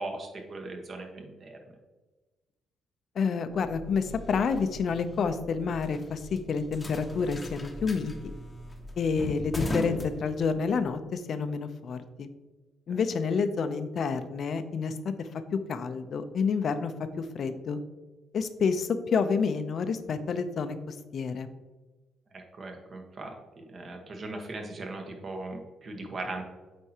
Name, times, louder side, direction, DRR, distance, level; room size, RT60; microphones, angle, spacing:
voice 1, 0.0-1.6 12.9-13.1 22.3-26.4, right 2 dB, 45° right, 2 dB, 1.2 m, -39 dB
voice 2, 3.2-8.1 9.0-12.3 12.9-16.9 17.2-17.8 18.3-21.5, left 5 dB, 60° left, 10 dB, 0.5 m, -29 dB
sound 1, 3.5-10.9, left 1 dB, 20° left, 0.8 m, -39 dB
8.1 x 4.4 x 2.9 m, 1.2 s
cardioid pair, 90°, 0 cm